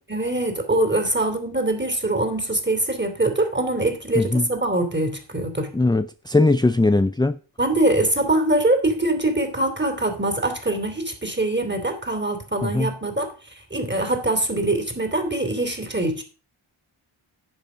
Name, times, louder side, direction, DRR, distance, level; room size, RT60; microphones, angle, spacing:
voice 1, 0.1-5.7 7.6-16.2, right 1 dB, 20° right, 2.9 m, -23 dB
voice 2, 4.2-4.5 5.7-7.4 12.6-12.9, left 2 dB, 10° left, 0.4 m, -20 dB
10.5 x 7.3 x 5.0 m
cardioid pair, 40°, 50 cm